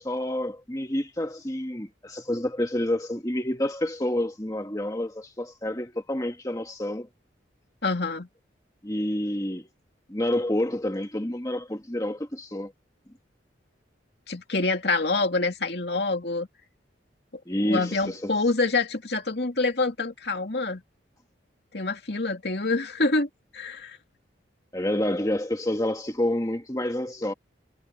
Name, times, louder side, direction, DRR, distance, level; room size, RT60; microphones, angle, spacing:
voice 1, 0.0-7.1 8.8-9.7 10.1-12.7 17.5-18.3 24.7-27.3, left 1 dB, 20° left, 1.5 m, -28 dB
voice 2, 7.8-8.3 14.3-16.5 17.6-20.8 21.7-24.0, left 3 dB, 60° left, 2.6 m, -26 dB
head